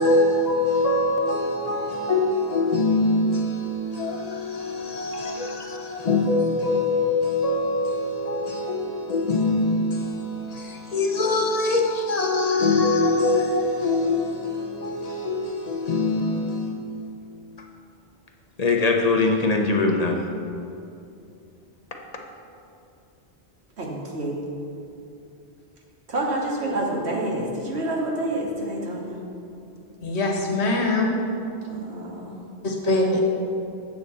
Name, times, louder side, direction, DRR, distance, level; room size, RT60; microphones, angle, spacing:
voice 1, 0.0-16.8 18.6-20.2 22.1-22.2, left 2 dB, 45° left, 0.7 m, -23 dB
voice 2, 23.8-24.5 26.1-29.2 31.6-32.5, right 1 dB, 75° right, 1.5 m, -28 dB
voice 3, 30.0-31.2 32.6-33.2, left 2 dB, 85° left, 1.4 m, -23 dB
7.9 x 3.9 x 6.7 m
omnidirectional pair, 1.1 m